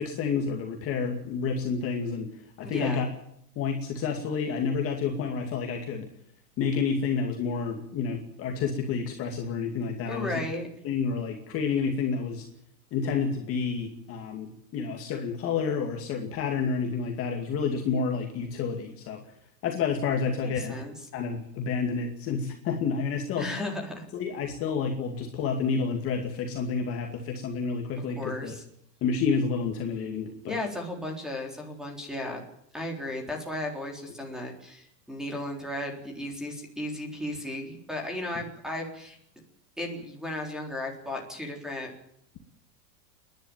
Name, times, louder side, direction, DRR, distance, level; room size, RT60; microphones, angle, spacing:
voice 1, 0.0-2.3 2.6-3.1 3.6-6.1 6.6-10.3 10.8-12.5 12.9-19.2 19.6-20.8 21.1-23.5 24.1-28.5 29.0-30.6, left 5 dB, 25° left, 2 dB, 2.4 m, -29 dB
voice 2, 2.6-3.1 10.0-10.7 20.4-20.9 23.4-24.0 28.0-28.6 30.4-32.4 32.7-39.2 39.8-41.9, left 1 dB, ahead, 2 dB, 3.9 m, -35 dB
29.5 x 11.0 x 9.1 m, 0.72 s
supercardioid pair, 165°, 49 cm